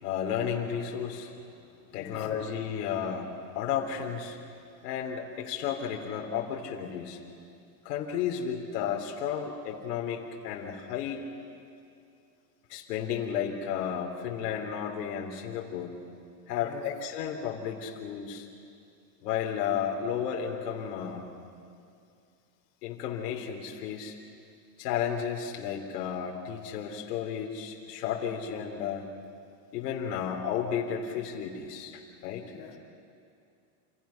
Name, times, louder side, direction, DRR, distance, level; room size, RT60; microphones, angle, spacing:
voice 1, 0.0-1.3 1.9-4.4 4.8-7.2 7.9-11.2 12.7-16.0 16.5-18.5 19.2-21.3 22.8-24.2 24.8-29.1 29.7-32.5, left 8 dB, 70° left, 1 dB, 3.5 m, -33 dB
voice 2, 1.9-2.4 16.6-16.9 32.5-32.8, left 8 dB, 50° left, 4 dB, 3.9 m, -47 dB
28.5 x 28.0 x 5.8 m, 2.5 s
supercardioid pair, 155°, 48 cm